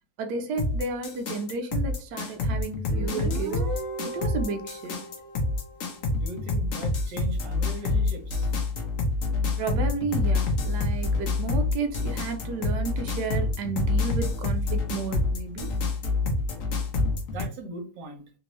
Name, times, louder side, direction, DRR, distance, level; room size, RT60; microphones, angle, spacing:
voice 1, 0.2-3.6 4.0-5.0 9.3-15.8, right 4 dB, 80° right, 0.9 m, -33 dB
sound 1, 0.6-17.4, left 3 dB, 70° left, 0.7 m, -27 dB
Guitar, 2.9-6.3, right 2 dB, 45° right, 1.0 m, -37 dB
voice 2, 6.1-8.5 17.3-18.2, right 2 dB, 65° right, 1.3 m, -39 dB
3.5 x 2.6 x 3.0 m
omnidirectional pair, 2.4 m